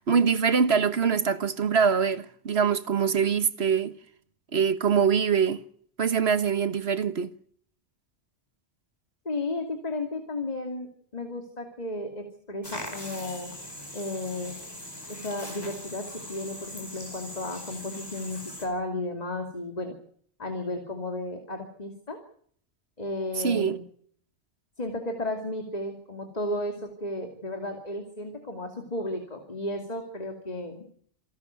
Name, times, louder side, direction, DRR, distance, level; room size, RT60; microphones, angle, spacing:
voice 1, 0.0-3.9 4.5-5.6 6.0-7.3 23.4-23.8, right 6 dB, 70° right, 1.5 m, -24 dB
voice 2, 9.2-13.5 13.9-14.5 15.1-19.9 20.4-22.2 23.0-23.8 24.8-30.9, left 2 dB, 35° left, 2.7 m, -34 dB
sound 1, 12.6-18.7, left 1 dB, 20° left, 4.9 m, -40 dB
27.5 x 12.0 x 9.5 m
omnidirectional pair, 1.1 m